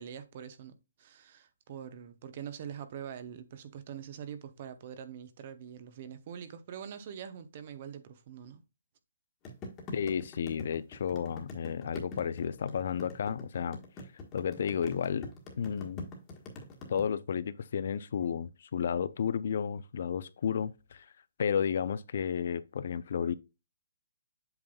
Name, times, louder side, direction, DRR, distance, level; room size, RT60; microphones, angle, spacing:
voice 1, 0.0-8.6, right 8 dB, 35° right, 0.8 m, -44 dB
sound 1, 9.5-17.0, left 2 dB, 15° left, 1.4 m, -44 dB
voice 2, 9.9-13.8 14.3-15.3 15.6-16.0 16.9-21.1 21.4-23.3, left 7 dB, 50° left, 0.5 m, -32 dB
8.0 x 5.4 x 2.3 m
hypercardioid pair, 165°, 0 cm